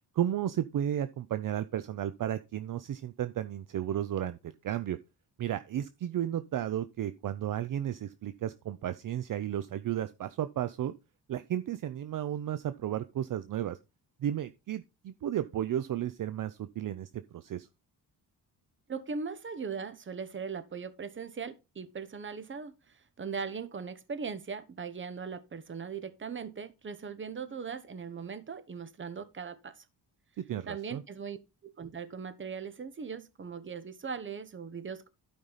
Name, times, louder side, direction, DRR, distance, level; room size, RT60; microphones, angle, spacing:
voice 1, 0.1-5.0 5.4-10.9 11.3-13.8 14.2-17.7 30.4-31.0, right 11 dB, 50° right, 0.6 m, -33 dB
voice 2, 18.9-29.8 30.6-31.4 31.6-35.1, right 5 dB, 30° right, 1.0 m, -39 dB
12.0 x 5.4 x 4.1 m
cardioid pair, 120°, 41 cm